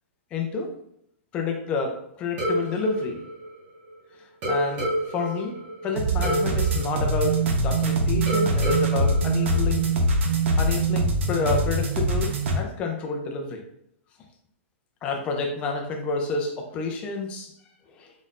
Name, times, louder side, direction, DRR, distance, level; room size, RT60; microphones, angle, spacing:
voice 1, 0.3-0.7 1.3-3.2 4.5-5.6 5.8-9.9 10.6-13.6 15.0-17.5 18.0-18.1, left 4 dB, 15° left, 2 dB, 0.5 m, -29 dB
sound 1, 2.4-4.0 4.4-7.8 8.3-10.2, right 1 dB, 25° right, 0.9 m, -30 dB
sound 2, 5.9-12.6, right 2 dB, 65° right, 0.9 m, -23 dB
4.0 x 3.8 x 2.5 m, 0.75 s
supercardioid pair, 175°, 7 cm